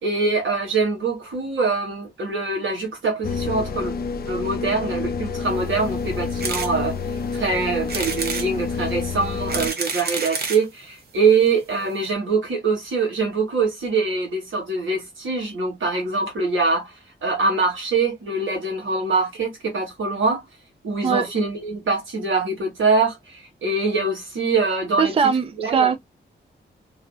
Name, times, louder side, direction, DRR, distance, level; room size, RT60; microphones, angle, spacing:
voice 1, 0.0-3.9 4.3-7.0 7.3-16.9 17.2-20.4 20.8-25.1 25.6-25.9, right 4 dB, 85° right, 1.4 m, -23 dB
sound 1, 3.2-9.7, left 5 dB, 55° left, 0.4 m, -28 dB
sound 2, 6.4-6.7 7.2-7.3 7.9-8.5 9.2-10.7 11.5-11.6 11.7-11.8 12.0-12.1, right 4 dB, 55° right, 0.8 m, -28 dB
voice 2, 25.0-26.0, right 6 dB, 30° right, 0.4 m, -20 dB
2.7 x 2.5 x 2.2 m
wide cardioid pair, 120°, 20 cm